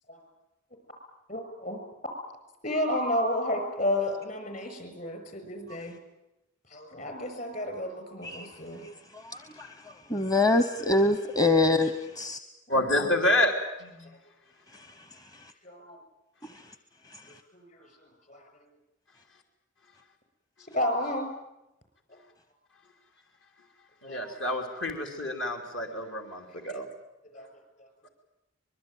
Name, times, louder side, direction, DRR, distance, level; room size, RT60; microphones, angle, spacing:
voice 1, 1.3-1.8 2.6-6.0 6.7-8.9 12.7-13.2 15.6-16.0 17.5-17.9 18.3-18.4 20.6-21.3 24.0-24.3 26.7-26.8 27.3-27.5 27.8-27.9, left 1 dB, 45° left, 7 dB, 6.5 m, -32 dB
voice 2, 8.8-9.7 10.1-12.4, left 2 dB, 20° left, 10 dB, 0.9 m, -25 dB
voice 3, 12.7-13.5 13.8-14.1 24.0-26.9, left 1 dB, 70° left, 3 dB, 3.3 m, -28 dB
24.5 x 21.5 x 9.2 m, 0.93 s
head